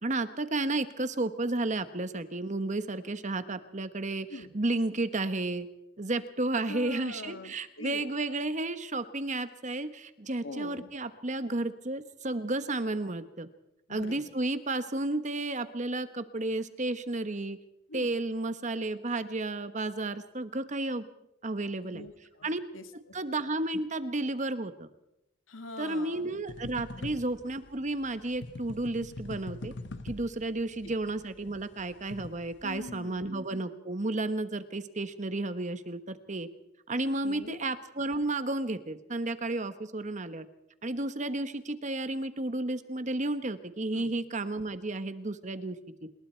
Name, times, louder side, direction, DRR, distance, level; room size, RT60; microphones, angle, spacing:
voice 1, 0.0-5.7 6.0-13.5 13.9-17.6 17.9-21.1 21.4-22.0 22.4-22.6 23.1-24.9 25.8-29.7 30.0-36.5 36.9-40.5 40.8-45.8, right 2 dB, 40° right, 11 dB, 1.2 m, -32 dB
voice 2, 6.7-8.0 10.4-10.9 13.9-14.3 17.9-18.1 21.8-23.2 25.5-26.4 27.0-27.2 30.8-30.9 32.6-33.2 37.2-37.6 43.9-44.1, left 2 dB, 85° left, 7 dB, 2.2 m, -44 dB
sound 1, 26.5-33.0, left 2 dB, 60° left, 1.1 m, -44 dB
27.0 x 21.0 x 4.5 m, 0.85 s
head